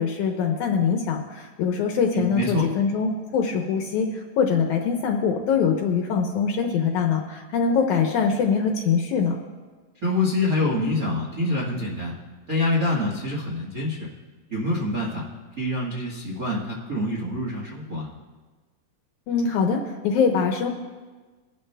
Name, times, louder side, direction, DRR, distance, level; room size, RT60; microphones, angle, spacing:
voice 1, 0.0-9.4 19.3-20.7, left 6 dB, 75° left, 3 dB, 1.9 m, -23 dB
voice 2, 2.1-2.6 10.0-12.1 12.5-14.1 14.5-15.2 15.6-18.1, left 2 dB, 60° right, -6 dB, 0.9 m, -26 dB
21.5 x 12.0 x 2.2 m, 1.3 s
omnidirectional pair, 4.1 m